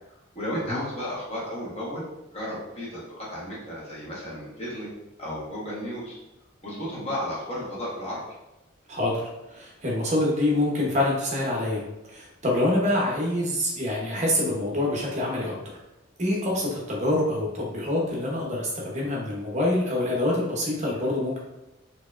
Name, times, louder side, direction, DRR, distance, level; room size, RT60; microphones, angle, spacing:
voice 1, 0.3-2.1 2.3-4.9 5.2-6.2 6.6-8.2, equal, 30° left, -6 dB, 1.1 m, -33 dB
voice 2, 8.9-9.2 9.5-11.8 12.1-15.5 16.2-21.4, left 1 dB, 35° right, -3 dB, 0.8 m, -26 dB
4.4 x 2.9 x 2.4 m, 0.95 s
head